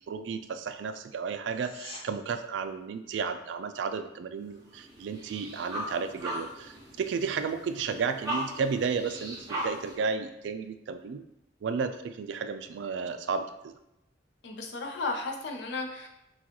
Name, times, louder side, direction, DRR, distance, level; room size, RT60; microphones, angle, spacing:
voice 1, 0.1-11.2 11.6-13.7, right 5 dB, 80° right, 9 dB, 0.3 m, -33 dB
sound 1, 1.4-2.1 13.4-13.5, left 1 dB, 30° left, 0.8 m, -44 dB
sound 2, 4.4-9.9, right 1 dB, 20° right, 1.1 m, -38 dB
voice 2, 14.4-16.1, left 3 dB, 70° left, 2 dB, 0.6 m, -34 dB
6.1 x 2.3 x 2.9 m, 0.87 s
head